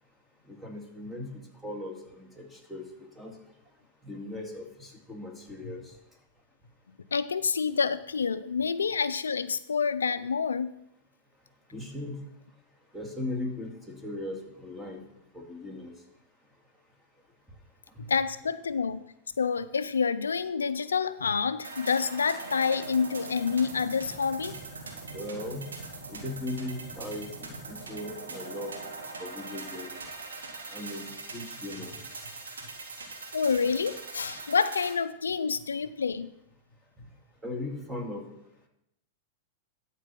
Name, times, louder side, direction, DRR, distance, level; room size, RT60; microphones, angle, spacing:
voice 1, 0.5-2.8 3.2-3.3 4.0-6.0 11.7-12.2 12.9-15.0 15.3-15.9 18.0-18.1 25.1-25.7 26.1-28.8 29.2-29.9 30.7-31.9 37.4-38.2, left 1 dB, ahead, 0 dB, 2.2 m, -38 dB
voice 2, 7.1-10.7 18.1-19.0 19.4-24.6 33.3-36.3, left 5 dB, 85° left, 14 dB, 0.4 m, -28 dB
sound 1, 21.6-34.9, right 3 dB, 85° right, 2.1 m, -41 dB
12.5 x 4.4 x 5.7 m, 0.79 s
hypercardioid pair, 105°, 0 cm